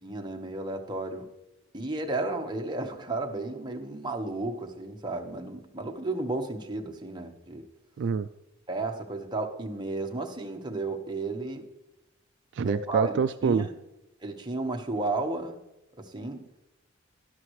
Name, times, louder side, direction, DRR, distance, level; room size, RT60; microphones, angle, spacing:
voice 1, 0.0-1.3 1.7-7.7 8.7-11.7 12.6-13.7 14.2-15.6 16.0-16.4, right 2 dB, 20° right, 2 dB, 1.1 m, -33 dB
voice 2, 8.0-8.3 12.5-13.7, right 6 dB, 60° right, 11 dB, 0.3 m, -26 dB
13.0 x 11.0 x 3.1 m, 0.95 s
head